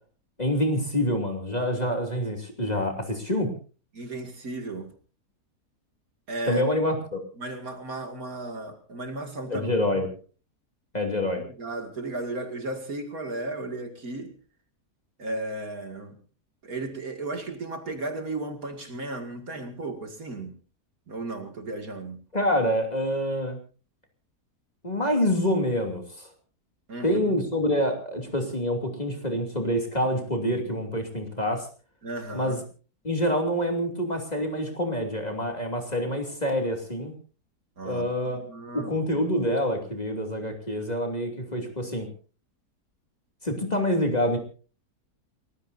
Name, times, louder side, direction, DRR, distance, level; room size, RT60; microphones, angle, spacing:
voice 1, 0.4-3.5 6.5-7.2 9.5-10.1 10.9-11.4 22.3-23.6 24.8-26.3 27.0-31.7 32.3-32.6 33.0-37.1 37.8-38.4 38.7-42.1 43.4-44.4, equal, 25° left, 3 dB, 2.9 m, -26 dB
voice 2, 3.9-4.9 6.3-6.6 7.4-9.7 11.4-14.3 15.2-16.2 16.6-20.6 21.1-22.2 26.9-27.4 32.0-32.6 37.8-38.1 38.3-39.1, right 2 dB, 60° right, 5 dB, 2.7 m, -35 dB
29.5 x 15.0 x 2.7 m, 0.37 s
omnidirectional pair, 1.7 m